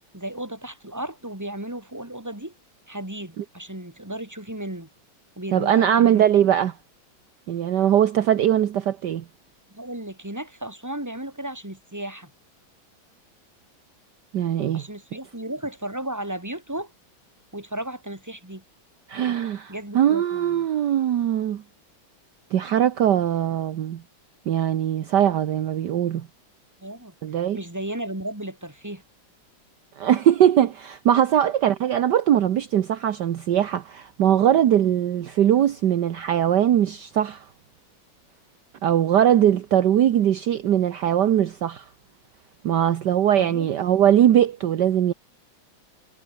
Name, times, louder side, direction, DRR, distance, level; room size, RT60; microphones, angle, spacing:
voice 1, 0.0-2.5 2.9-4.9 5.4-6.3 9.7-12.3 14.7-16.9 17.5-18.6 19.7-20.7 26.8-27.1 27.5-29.0 43.3-43.7, right 1 dB, 10° right, 3.9 m, -34 dB
voice 2, 5.5-6.7 7.5-9.2 14.3-14.8 19.1-21.6 22.5-24.0 24.5-26.3 27.2-27.6 30.0-37.4 38.8-41.8 42.6-45.1, right 10 dB, 65° right, 1.5 m, -21 dB
omnidirectional pair, 2.2 m